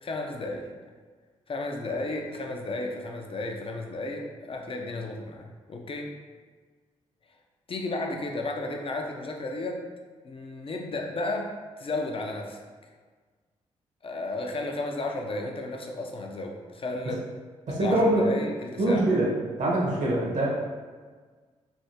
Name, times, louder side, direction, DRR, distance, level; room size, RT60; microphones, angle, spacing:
voice 1, 0.0-0.7 1.5-6.1 7.7-9.8 10.2-12.6 14.0-17.2 17.7-19.1, left 2 dB, 40° left, 2 dB, 0.6 m, -33 dB
voice 2, 17.7-18.3 18.8-19.3 19.6-20.5, right 1 dB, 60° right, -4 dB, 1.2 m, -23 dB
3.4 x 2.7 x 2.8 m, 1.5 s
supercardioid pair, 45°, 14 cm